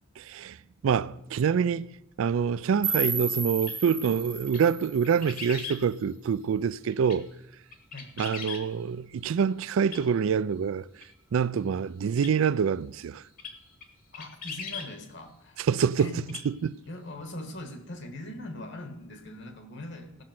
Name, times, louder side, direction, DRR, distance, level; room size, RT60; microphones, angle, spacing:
voice 1, 0.2-0.6 0.8-1.9 2.2-7.3 8.2-10.9 11.3-13.2 15.6-16.8, right 7 dB, 75° right, 0.3 m, -26 dB
sound 1, 2.8-5.8, right 5 dB, 10° right, 0.4 m, -33 dB
sound 2, 3.6-3.8 4.5-4.6 5.0-5.8 6.9-7.2 7.7-8.6 9.8-10.0 11.0-11.1 12.2-12.3 13.4-13.5 13.8-13.9 14.1-14.9 16.2-16.5 16.7-16.8, left 5 dB, 40° left, 1.2 m, -39 dB
voice 2, 14.1-15.7 16.0-16.3 16.8-20.2, left 1 dB, 60° left, 1.5 m, -41 dB
15.5 x 6.3 x 5.9 m
head